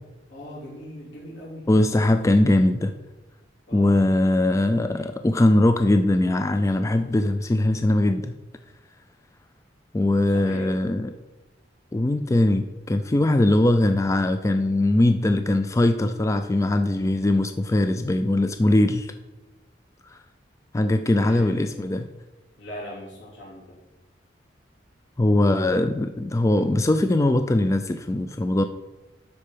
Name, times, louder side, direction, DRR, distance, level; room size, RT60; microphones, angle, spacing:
voice 1, 0.3-1.7 3.7-4.1 10.3-10.8 21.1-21.8 22.6-23.8, left 1 dB, 85° left, -5 dB, 3.5 m, -39 dB
voice 2, 1.7-2.9 3.7-8.4 9.9-11.1 11.9-19.1 20.1-20.2 20.7-22.1 25.2-28.6, left 1 dB, 15° left, 8 dB, 0.3 m, -21 dB
12.0 x 4.6 x 5.0 m, 1.1 s
head